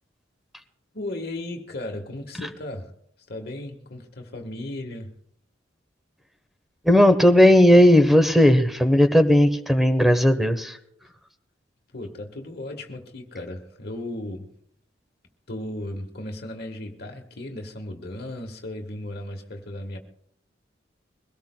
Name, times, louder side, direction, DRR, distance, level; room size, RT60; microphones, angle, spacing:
voice 1, 0.9-2.9 3.3-5.1 11.9-14.5 15.5-20.0, left 1 dB, 60° left, 1.3 m, -35 dB
voice 2, 6.8-10.8, left 1 dB, ahead, 1.0 m, -16 dB
22.5 x 17.5 x 2.2 m
head